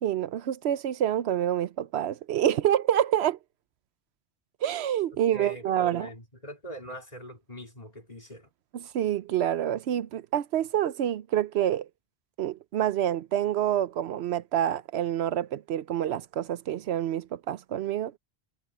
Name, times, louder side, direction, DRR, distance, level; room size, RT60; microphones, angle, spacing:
voice 1, 0.0-3.4 4.6-6.1 8.7-11.9 12.4-18.1, right 11 dB, 80° right, 0.9 m, -27 dB
voice 2, 5.1-8.5, equal, 35° left, 4.0 m, -43 dB
omnidirectional pair, 1.1 m